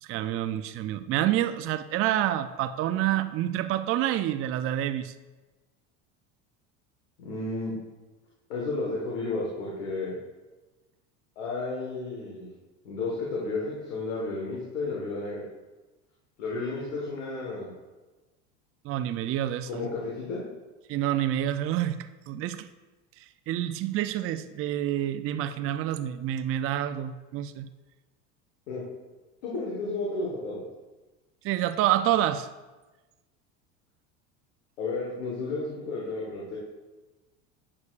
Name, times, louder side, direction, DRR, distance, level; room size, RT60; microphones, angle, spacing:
voice 1, 0.0-5.1 18.8-19.9 20.9-22.0 22.3-22.7 23.5-27.7 31.4-32.5, right 12 dB, 35° right, 11 dB, 0.4 m, -28 dB
voice 2, 7.2-7.7 8.5-10.1 11.4-12.5 12.8-15.4 16.4-17.7 19.7-20.4 28.7-28.8 29.4-30.6 34.8-36.6, left 3 dB, 85° left, -4 dB, 1.5 m, -32 dB
8.5 x 6.4 x 2.4 m, 1.2 s
supercardioid pair, 95°, 38 cm